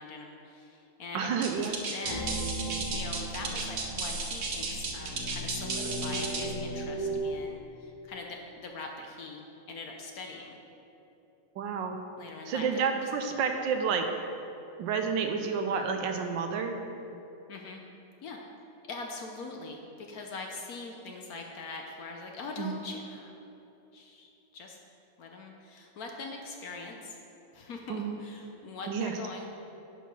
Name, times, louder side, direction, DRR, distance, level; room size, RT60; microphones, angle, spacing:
voice 1, 0.0-2.4 2.9-10.6 12.2-13.3 17.5-17.8 18.2-18.4 18.9-23.4 23.9-24.8 25.2-27.2 27.5-29.5, left 3 dB, 60° left, 2 dB, 1.0 m, -42 dB
voice 2, 1.1-1.8 11.6-12.0 12.5-14.0 14.8-16.8 22.6-22.8 27.9-28.2 28.9-29.1, right 6 dB, 80° right, 5 dB, 1.4 m, -30 dB
sound 1, 1.4-6.6, right 4 dB, 65° right, 0.5 m, -35 dB
sound 2, 2.0-7.2, right 1 dB, 45° left, 2.0 m, -36 dB
10.0 x 4.6 x 5.4 m, 2.9 s
omnidirectional pair, 2.1 m